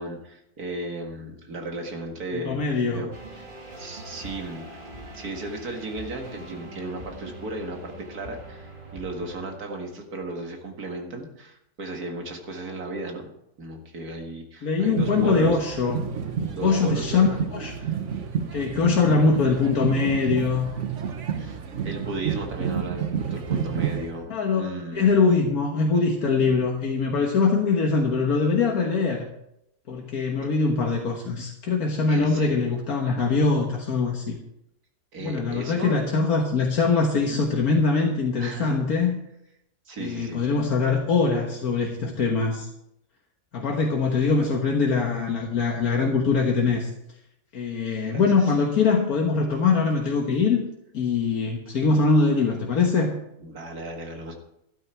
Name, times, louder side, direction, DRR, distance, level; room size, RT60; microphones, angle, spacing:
voice 1, 0.0-3.5 3.8-4.8 5.1-13.3 13.6-15.6 16.5-17.3 17.8-18.0 21.4-25.1 32.1-32.6 35.1-36.0 37.1-37.5 38.4-38.8 39.9-40.4 48.1-48.5 53.4-54.3, right 2 dB, 85° right, 2 dB, 2.4 m, -35 dB
voice 2, 2.3-3.1 14.6-16.0 16.6-17.7 18.5-20.7 24.3-29.3 29.9-34.4 35.2-39.2 40.0-42.7 43.5-46.9 47.5-50.6 50.9-53.1, left 4 dB, 75° left, 0 dB, 1.8 m, -22 dB
sound 1, 3.1-9.6, right 1 dB, 35° right, 2.0 m, -42 dB
sound 2, 14.9-24.2, right 7 dB, 55° right, 1.3 m, -30 dB
12.5 x 11.5 x 4.5 m, 0.80 s
omnidirectional pair, 1.6 m